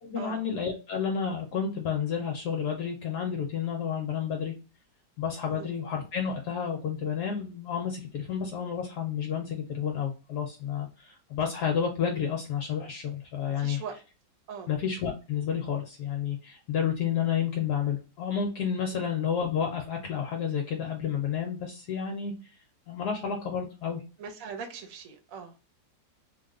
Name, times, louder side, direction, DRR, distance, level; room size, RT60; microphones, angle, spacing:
voice 1, 0.0-4.5 5.2-13.8 14.7-22.3 22.9-24.0, left 7 dB, 70° left, 2 dB, 1.1 m, -30 dB
voice 2, 5.5-5.8 13.6-14.0 14.5-14.7 18.9-19.0 24.2-25.7, right 6 dB, 60° right, 5 dB, 1.0 m, -41 dB
3.2 x 2.2 x 3.6 m, 0.32 s
omnidirectional pair, 1.9 m